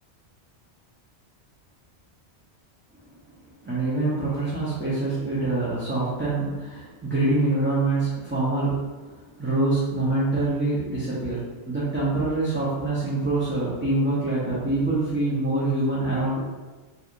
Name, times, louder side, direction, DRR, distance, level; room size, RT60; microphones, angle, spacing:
voice 1, 3.6-16.4, right 2 dB, 15° right, -10 dB, 0.5 m, -25 dB
3.2 x 2.6 x 2.5 m, 1.3 s
omnidirectional pair, 1.1 m